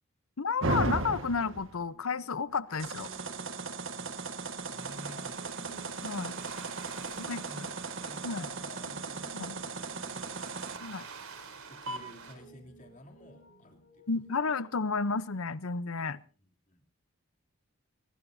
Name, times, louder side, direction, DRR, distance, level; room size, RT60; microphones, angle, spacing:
voice 1, 0.4-3.1 6.0-6.3 7.2-7.7 8.2-8.5 9.3-9.6 10.8-11.0 14.1-16.2, left 4 dB, 75° left, 17 dB, 0.8 m, -32 dB
sound 1, 0.6-1.8 2.8-10.8 11.9-12.0, right 3 dB, 60° right, 1.6 m, -36 dB
Piano, 1.7-15.4, right 1 dB, 60° left, 7.2 m, -59 dB
voice 2, 4.6-5.4 6.2-11.0 11.7-14.1 16.7-16.8, left 1 dB, 35° left, 3 dB, 3.2 m, -52 dB
sound 2, 4.8-12.4, right 5 dB, 85° right, 4.0 m, -48 dB
23.0 x 21.0 x 2.7 m, 0.36 s
head